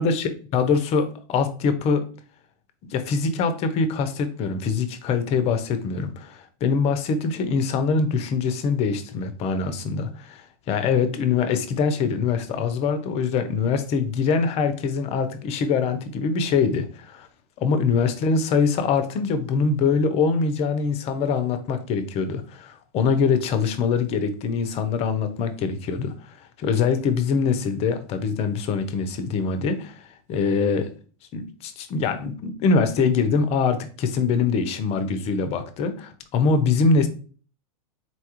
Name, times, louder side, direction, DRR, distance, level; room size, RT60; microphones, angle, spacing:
voice 1, 0.0-2.0 2.8-17.3 17.6-30.0 30.3-30.9 31.3-37.1, left 5 dB, 30° left, 10 dB, 0.5 m, -23 dB
4.1 x 2.3 x 2.9 m, 0.39 s
hypercardioid pair, 120°, 20 cm